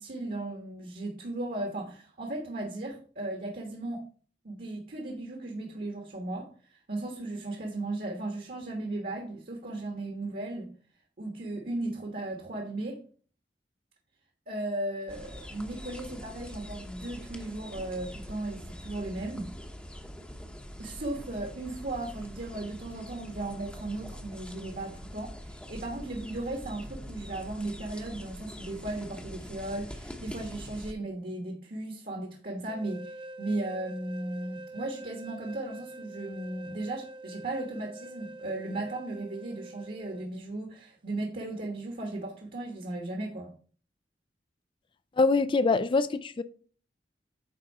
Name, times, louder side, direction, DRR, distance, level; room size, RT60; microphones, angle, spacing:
voice 1, 0.0-4.0 4.4-10.7 11.2-13.0 14.5-19.5 20.8-43.5, right 2 dB, 55° right, 1.4 m, -36 dB
sound 1, 15.1-30.9, equal, 5° left, 0.9 m, -44 dB
sound 2, 32.7-40.3, right 2 dB, 30° right, 0.5 m, -45 dB
voice 2, 45.2-46.4, left 3 dB, 30° left, 0.4 m, -24 dB
9.2 x 3.9 x 5.5 m
head